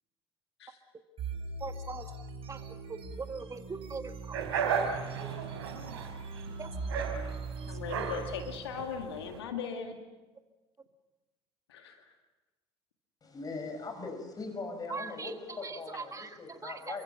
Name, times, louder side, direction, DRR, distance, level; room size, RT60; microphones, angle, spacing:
sound 1, 1.2-8.6, right 4 dB, 45° right, 6.5 m, -41 dB
voice 1, 1.6-2.0 2.5-2.6 2.9-3.0 3.3-4.1 6.6-6.7 14.9-15.3 16.1-16.3 16.6-16.7, right 4 dB, 25° right, 7 dB, 1.7 m, -39 dB
sound 2, 4.3-9.4, right 6 dB, 70° right, 3.8 m, -35 dB
voice 2, 7.7-10.0 11.7-12.1, left 6 dB, 75° left, 5 dB, 2.1 m, -39 dB
voice 3, 13.2-17.0, left 3 dB, 30° left, 5 dB, 6.5 m, -40 dB
29.0 x 24.5 x 5.8 m, 1.1 s
figure-of-eight pair, 60°, 14 cm